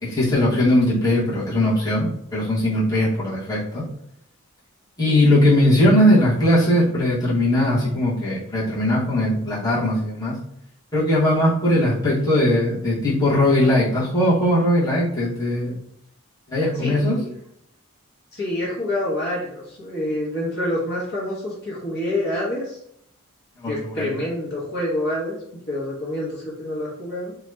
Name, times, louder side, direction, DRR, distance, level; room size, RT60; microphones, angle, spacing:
voice 1, 0.0-3.8 5.0-10.3 10.9-15.8 16.5-17.2 23.6-24.1, left 1 dB, 15° left, -10 dB, 1.1 m, -19 dB
voice 2, 16.7-17.3 18.3-22.8 23.6-25.4 25.7-27.3, left 1 dB, 50° left, -5 dB, 1.0 m, -27 dB
2.8 x 2.3 x 3.3 m, 0.74 s
head